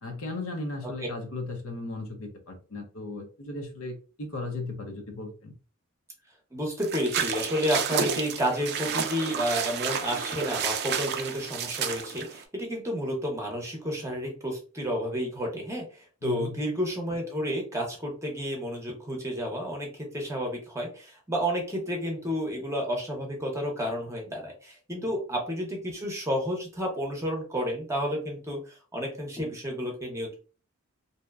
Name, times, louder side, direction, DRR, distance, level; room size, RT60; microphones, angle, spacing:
voice 1, 0.0-5.5 16.2-16.6, left 2 dB, 70° left, 3 dB, 0.6 m, -36 dB
voice 2, 6.5-30.4, equal, 15° right, 0 dB, 0.7 m, -31 dB
sound 1, 6.8-12.4, right 7 dB, 50° right, 0.4 m, -31 dB
2.7 x 2.1 x 2.3 m, 0.36 s
head